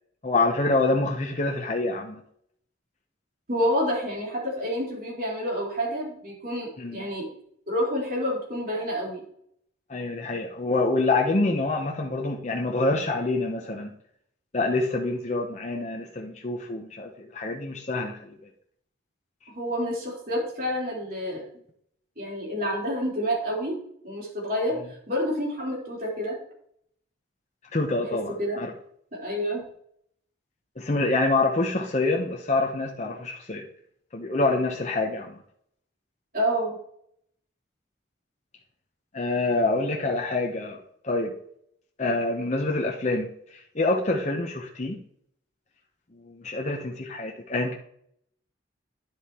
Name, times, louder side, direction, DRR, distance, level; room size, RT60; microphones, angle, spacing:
voice 1, 0.2-2.2 6.8-7.1 9.9-13.9 14.5-18.4 27.7-28.7 30.8-33.6 34.1-35.4 39.1-40.8 41.0-41.3 42.0-45.0 46.1-47.7, left 2 dB, 35° left, 1 dB, 0.8 m, -26 dB
voice 2, 3.5-7.3 7.7-9.2 19.5-21.4 22.2-23.8 24.0-26.4 28.1-28.6 29.1-29.6 36.3-36.8, equal, 45° right, -4 dB, 3.9 m, -28 dB
10.5 x 7.8 x 2.9 m, 0.67 s
head